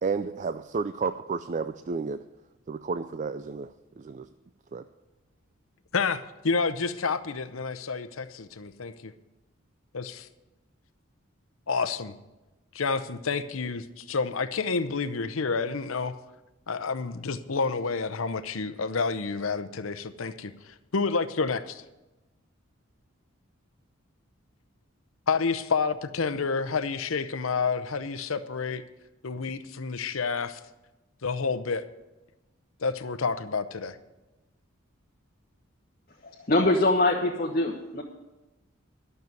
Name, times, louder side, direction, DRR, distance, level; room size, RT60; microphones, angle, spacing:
voice 1, 0.0-2.2 2.7-3.7 4.0-4.3 4.7-4.8, right 4 dB, 35° right, 12 dB, 0.3 m, -31 dB
voice 2, 5.9-9.1 9.9-10.1 11.7-12.1 12.7-16.1 16.7-21.8 25.3-28.8 29.2-30.6 31.2-31.8 32.8-34.0, left 4 dB, 75° left, 13 dB, 0.7 m, -29 dB
voice 3, 36.2-38.0, left 2 dB, 45° left, -1 dB, 1.2 m, -24 dB
12.0 x 6.8 x 9.2 m, 1.1 s
head